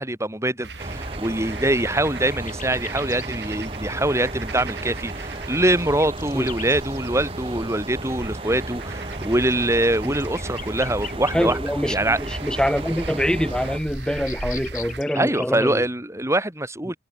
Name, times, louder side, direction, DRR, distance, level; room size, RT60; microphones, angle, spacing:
voice 1, 0.0-11.6 11.9-12.2 15.1-17.0, right 1 dB, 15° right, 5.5 m, -24 dB
sound 1, 0.6-15.0, right 2 dB, 75° right, 2.9 m, -37 dB
sound 2, 0.8-13.8, right 1 dB, 30° right, 4.1 m, -34 dB
sound 3, 2.3-3.3 3.7-3.8 5.1-6.8 7.7-7.9 8.7-12.0 12.3-15.7, left 9 dB, 50° left, 6.8 m, -41 dB
voice 2, 11.3-15.8 16.9-17.0, equal, 5° left, 2.4 m, -25 dB
head